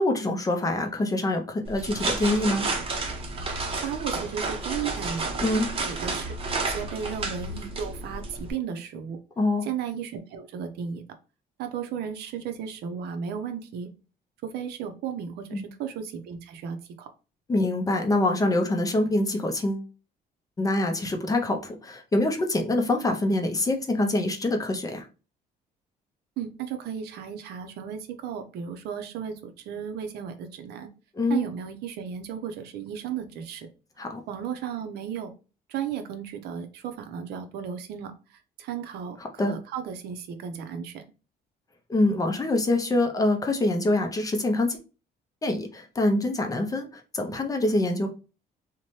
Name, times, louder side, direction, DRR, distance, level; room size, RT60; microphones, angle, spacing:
voice 1, 0.0-2.7 5.4-5.7 9.4-9.7 15.5-15.6 17.5-19.9 20.6-25.1 31.2-31.5 34.0-34.2 39.4-39.6 41.9-44.8 45.4-48.1, left 2 dB, 20° left, 4 dB, 0.5 m, -25 dB
sound 1, 1.6-8.5, right 3 dB, 35° right, 0.7 m, -31 dB
voice 2, 3.8-5.3 5.8-6.3 6.6-9.2 9.6-11.0 11.6-13.9 14.4-17.1 26.4-30.9 31.3-33.7 34.3-35.3 35.7-41.0, right 8 dB, 75° right, 7 dB, 0.5 m, -34 dB
2.7 x 2.1 x 3.0 m, 0.33 s
cardioid pair, 110°, 17 cm